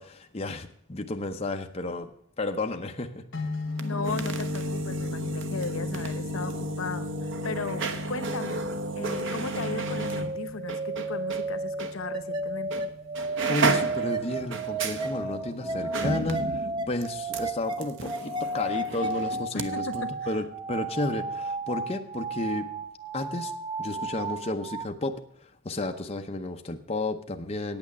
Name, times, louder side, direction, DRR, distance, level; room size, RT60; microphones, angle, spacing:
voice 1, 0.0-2.1 2.4-3.2 13.5-22.7 23.1-23.5 23.8-27.8, left 2 dB, 30° left, 4 dB, 0.8 m, -32 dB
sound 1, 3.3-15.4, left 3 dB, 65° left, 1.9 m, -38 dB
sound 2, 3.7-11.5 11.8-11.9 12.7-12.9 13.1-19.7 19.9-20.0, right 3 dB, 65° right, 0.9 m, -33 dB
voice 2, 3.8-7.8 8.1-8.7 8.9-12.9 19.5-20.1, left 4 dB, 85° left, 11 dB, 0.9 m, -36 dB
sound 3, 5.7-24.9, right 2 dB, 20° right, 0.6 m, -34 dB
8.8 x 8.6 x 7.0 m, 0.64 s
head